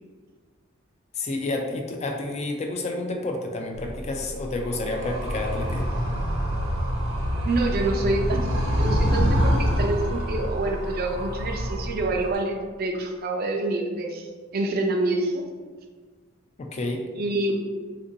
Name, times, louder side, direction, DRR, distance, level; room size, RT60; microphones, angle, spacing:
voice 1, 1.1-5.9 16.6-17.0, left 2 dB, 30° left, 2 dB, 0.3 m, -30 dB
Animal, 3.7-12.3, equal, 85° right, 0.9 m, -26 dB
voice 2, 7.4-8.5 8.8-15.4 17.2-17.8, right 2 dB, 50° right, 2 dB, 0.4 m, -27 dB
3.5 x 2.6 x 2.6 m, 1.5 s
head